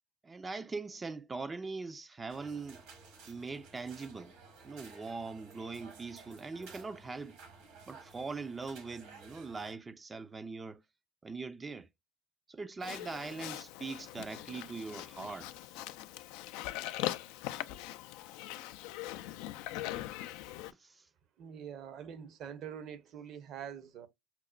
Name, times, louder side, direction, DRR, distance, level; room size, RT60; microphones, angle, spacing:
voice 1, 0.2-2.8 3.3-4.3 4.6-7.4 7.9-10.8 11.2-11.9 12.5-15.8 20.7-21.1, right 4 dB, 25° right, 0.4 m, -42 dB
sound 1, 2.3-9.7, right 4 dB, 70° right, 1.4 m, -54 dB
Livestock farm animals working animals, 12.8-20.7, left 14 dB, 70° left, 0.3 m, -41 dB
voice 2, 21.4-24.1, right 8 dB, 55° right, 0.7 m, -45 dB
5.8 x 2.1 x 2.4 m
hypercardioid pair, 80°, 0 cm